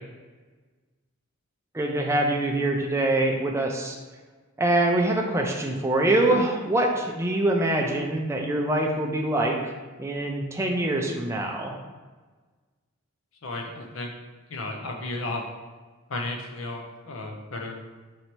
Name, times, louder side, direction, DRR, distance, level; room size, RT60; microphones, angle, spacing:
voice 1, 1.7-4.0 4.6-9.7 10.0-11.7, right 1 dB, 15° right, 1 dB, 0.4 m, -24 dB
voice 2, 13.4-14.1 14.5-15.4 16.1-17.8, left 2 dB, 65° left, 2 dB, 0.6 m, -33 dB
3.2 x 2.8 x 4.3 m, 1.3 s
head